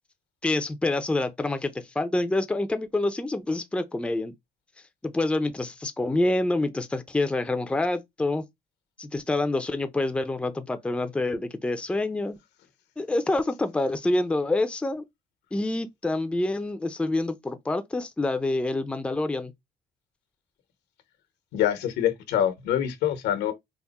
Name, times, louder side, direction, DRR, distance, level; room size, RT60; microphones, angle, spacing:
voice 1, 0.4-4.3 5.0-8.4 9.0-12.4 13.0-15.0 15.5-19.5, left 2 dB, 5° left, 0.5 m, -27 dB
voice 2, 21.5-23.5, left 10 dB, 85° left, 1.0 m, -25 dB
3.6 x 2.1 x 4.0 m
cardioid pair, 110°, 17 cm